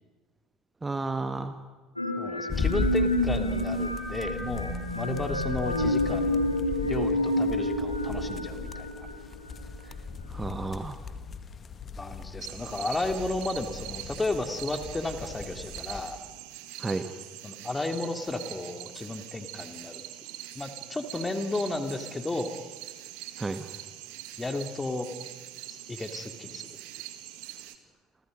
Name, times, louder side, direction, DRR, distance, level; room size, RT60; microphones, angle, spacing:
voice 1, 0.8-1.6 10.3-11.0 16.8-17.1 23.4-23.7, right 3 dB, 15° right, 9 dB, 1.4 m, -32 dB
sound 1, 2.0-9.7, left 1 dB, 90° left, 2.2 m, -29 dB
voice 2, 2.2-6.4 6.8-9.1 12.0-16.2 17.4-20.0 20.5-22.5 24.4-25.1 25.7-26.7, left 2 dB, 15° left, 6 dB, 3.0 m, -33 dB
sound 2, 2.5-16.0, left 4 dB, 30° left, 1.8 m, -37 dB
sound 3, 12.4-27.8, right 14 dB, 60° right, 1.8 m, -43 dB
29.5 x 27.0 x 5.4 m, 1.3 s
figure-of-eight pair, 60°, 0 cm